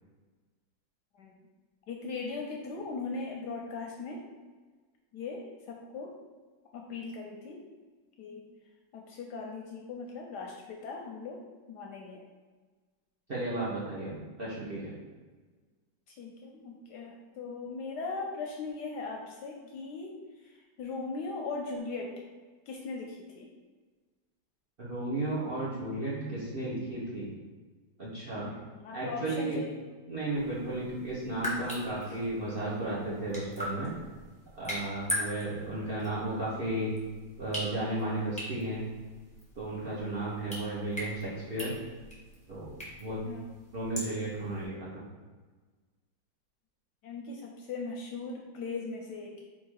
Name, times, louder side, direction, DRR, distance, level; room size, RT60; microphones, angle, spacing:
voice 1, 1.9-4.2 5.1-6.1 6.7-7.6 8.2-8.4 8.9-11.4 11.7-12.2 16.1-22.1 22.7-23.5 28.4-29.8 32.0-32.2 43.2-43.4 47.0-49.4, left 4 dB, 70° left, 0 dB, 1.0 m, -39 dB
voice 2, 13.3-15.0 24.8-27.3 28.0-28.5 28.9-29.6 30.1-33.9 34.5-36.9 37.4-38.8 39.6-41.7 42.5-42.7 43.0-43.2 43.7-45.0, right 2 dB, 40° right, -7 dB, 0.8 m, -34 dB
sound 1, 30.3-44.7, left 1 dB, 5° left, 0.8 m, -41 dB
3.7 x 2.9 x 4.6 m, 1.4 s
omnidirectional pair, 2.1 m